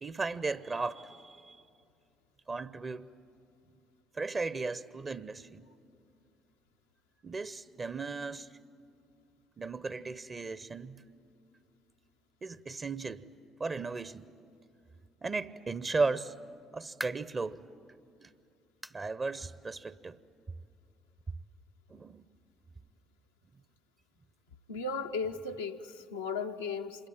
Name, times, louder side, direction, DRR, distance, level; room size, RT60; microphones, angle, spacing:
voice 1, 0.0-1.6 2.5-3.1 4.2-5.6 7.2-8.5 9.6-11.0 12.4-13.3 13.6-14.3 15.2-16.3 16.7-17.6 18.2-18.3 18.9-20.2 21.9-22.2, right 3 dB, 35° right, 0.7 m, -35 dB
sound 1, 17.0-17.4 17.9-18.0 18.8-19.1 19.4-19.5 20.0-20.1 21.2-21.3, equal, ahead, 0.6 m, -44 dB
voice 2, 24.7-27.1, left 4 dB, 85° left, 0.7 m, -36 dB
26.5 x 22.0 x 9.1 m
figure-of-eight pair, 50°, 0 cm